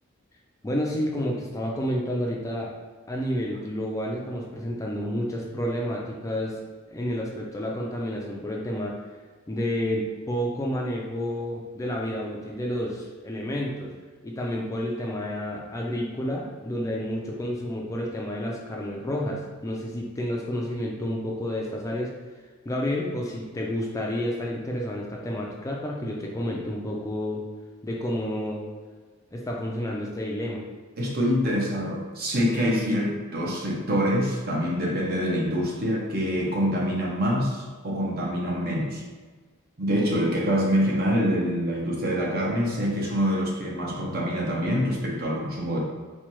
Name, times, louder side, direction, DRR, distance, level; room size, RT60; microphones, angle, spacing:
voice 1, 0.6-2.7 3.1-6.6 6.9-9.0 9.5-13.9 14.2-22.1 22.7-27.4 27.8-28.7 29.3-30.6, equal, 15° left, -2 dB, 0.4 m, -30 dB
voice 2, 31.0-39.0 39.8-45.8, equal, 50° right, -2 dB, 0.8 m, -25 dB
4.4 x 2.2 x 3.0 m, 1.4 s
head